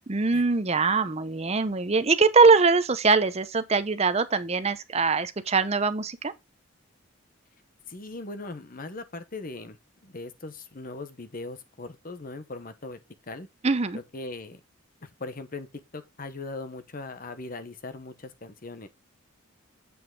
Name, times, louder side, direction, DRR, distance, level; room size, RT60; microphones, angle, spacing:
voice 1, 0.1-6.3 13.6-14.0, right 4 dB, 30° right, 0.6 m, -22 dB
voice 2, 7.9-13.0 13.3-13.5 13.9-14.6 15.0-15.7 15.9-18.9, left 2 dB, 40° left, 0.9 m, -39 dB
8.0 x 5.6 x 3.7 m
head